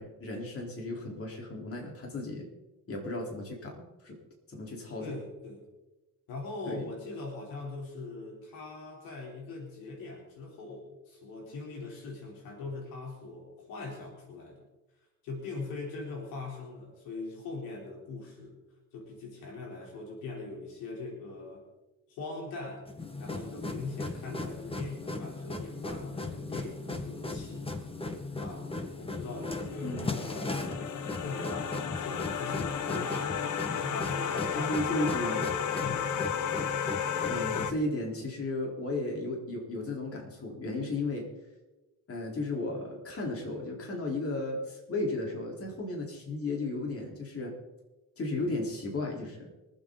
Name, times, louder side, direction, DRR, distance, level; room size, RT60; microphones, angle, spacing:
voice 1, 0.0-2.5 2.9-4.2 4.5-5.1 6.7-6.9 29.8-30.1 34.5-35.4 37.3-41.3 42.1-47.5 48.2-49.5, left 2 dB, 40° left, -1 dB, 4.3 m, -34 dB
voice 2, 5.0-5.6 6.3-14.7 15.2-18.6 18.9-21.7 22.1-22.9 23.2-27.8 28.4-33.5 33.7-36.1 36.7-37.0, left 3 dB, 90° left, 0 dB, 3.9 m, -41 dB
sound 1, 22.9-37.8, left 2 dB, 15° left, 1.6 m, -37 dB
sound 2, 29.3-37.7, left 8 dB, 60° left, 1.2 m, -33 dB
24.5 x 8.4 x 4.1 m, 1.1 s
cardioid pair, 90°, 34 cm